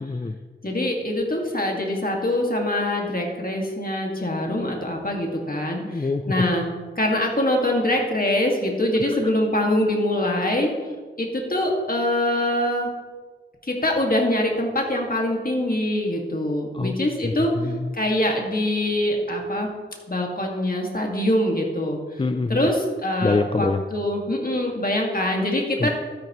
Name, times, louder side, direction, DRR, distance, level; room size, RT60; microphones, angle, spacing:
voice 1, 0.0-0.4 5.8-6.3 9.0-9.2 16.7-16.9 17.2-17.9 22.2-22.7 23.2-23.8 25.8-25.9, left 3 dB, 25° left, 8 dB, 0.4 m, -25 dB
voice 2, 0.6-6.6 7.0-10.7 11.2-12.9 13.7-17.5 17.9-19.7 20.1-22.0 22.5-25.9, left 1 dB, 45° left, 0 dB, 2.0 m, -24 dB
12.0 x 10.0 x 3.1 m, 1.5 s
wide cardioid pair, 60°, 20 cm